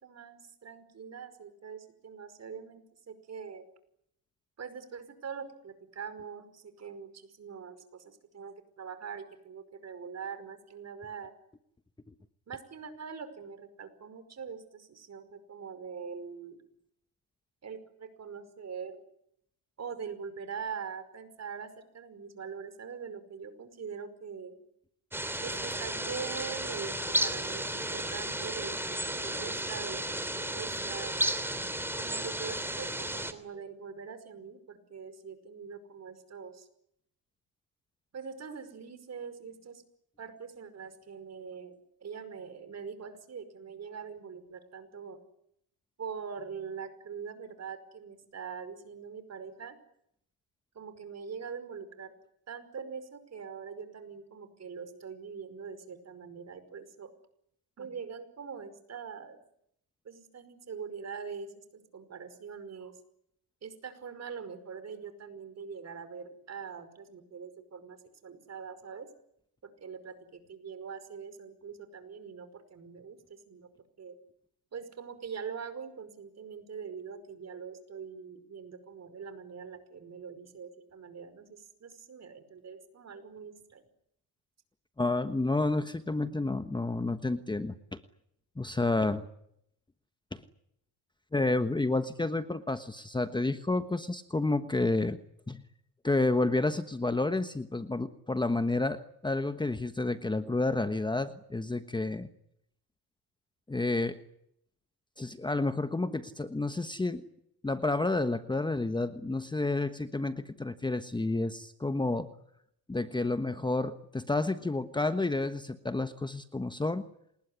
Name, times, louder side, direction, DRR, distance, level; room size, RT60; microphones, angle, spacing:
voice 1, 0.0-3.6 4.6-11.3 12.5-16.6 17.6-19.0 19.8-24.6 25.4-31.2 32.0-36.7 38.1-39.8 40.2-45.2 46.0-49.8 50.8-52.1 52.5-57.1 57.8-59.4 60.1-63.0 63.6-69.1 69.6-73.7 74.0-74.2 74.7-83.8, right 6 dB, 45° right, 11 dB, 5.3 m, -43 dB
sound 1, 25.1-33.3, right 1 dB, 5° right, 3.0 m, -33 dB
voice 2, 85.0-88.0 88.6-89.2 90.3-90.4 91.3-95.2 95.5-95.6 96.0-102.3 103.7-104.2 105.2-107.2 107.6-112.3 112.9-117.1, left 2 dB, 10° left, 10 dB, 1.2 m, -30 dB
27.5 x 20.5 x 9.9 m, 0.75 s
cardioid pair, 95°, 38 cm